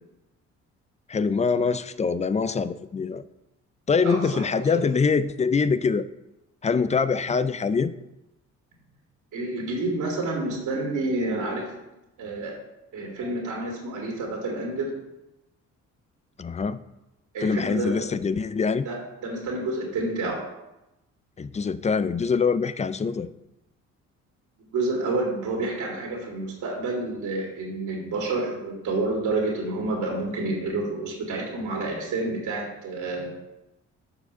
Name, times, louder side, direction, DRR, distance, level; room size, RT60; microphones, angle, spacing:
voice 1, 1.1-3.2 3.9-6.1 6.6-7.9 16.4-16.8 17.4-18.9 21.4-23.3, left 5 dB, 25° left, 15 dB, 0.4 m, -24 dB
voice 2, 4.0-4.8 9.3-11.6 12.2-12.5 12.9-14.9 17.3-18.0 18.8-20.4 24.7-33.3, right 2 dB, 85° right, -2 dB, 2.6 m, -29 dB
6.8 x 4.9 x 6.7 m, 0.95 s
cardioid pair, 90°, 30 cm